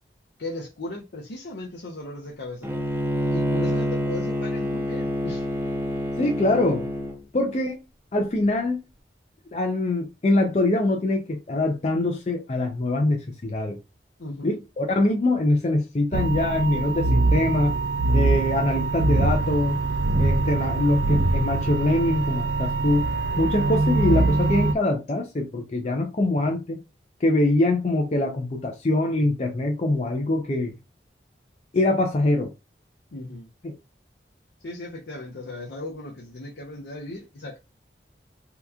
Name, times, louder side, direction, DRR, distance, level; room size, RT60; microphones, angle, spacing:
voice 1, 0.4-2.7 3.3-5.5 14.2-14.6 33.1-33.5 34.6-37.6, left 2 dB, 80° left, 0.6 m, -37 dB
Bowed string instrument, 2.6-7.2, equal, 10° right, 0.7 m, -27 dB
voice 2, 6.2-6.9 7.3-7.8 8.1-8.8 9.5-13.8 14.4-17.8 18.1-19.8 20.2-23.1 23.4-26.8 27.2-30.7 31.7-32.5 33.6-33.7, left 2 dB, 40° left, 0.4 m, -23 dB
sound 1, 16.1-24.7, right 2 dB, 90° right, 0.4 m, -23 dB
2.9 x 2.3 x 3.5 m
head